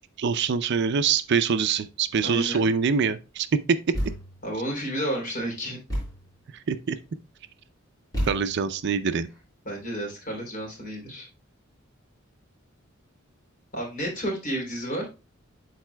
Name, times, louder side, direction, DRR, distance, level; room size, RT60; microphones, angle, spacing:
voice 1, 0.2-3.5 6.7-7.0 8.3-9.3, right 6 dB, 55° right, 0.4 m, -24 dB
voice 2, 2.2-2.6 4.4-5.8 9.6-11.3 13.7-15.1, right 1 dB, 40° left, 3.1 m, -31 dB
Thump thud, 3.9-4.5 5.9-6.3 8.1-8.8, equal, 20° left, 4.3 m, -31 dB
12.0 x 4.1 x 2.2 m
head